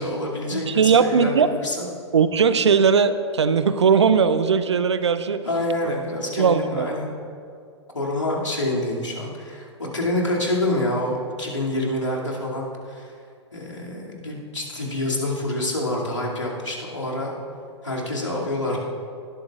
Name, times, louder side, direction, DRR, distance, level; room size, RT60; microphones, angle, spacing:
voice 1, 0.0-1.8 5.4-7.1 7.9-13.1 13.5-17.3 17.8-18.8, left 1 dB, 80° left, -3 dB, 2.5 m, -27 dB
voice 2, 0.5-1.6 2.1-5.5 5.8-5.9 6.4-6.9, right 6 dB, 70° right, 12 dB, 0.7 m, -19 dB
19.0 x 12.5 x 2.4 m, 2.3 s
figure-of-eight pair, 100°, 15 cm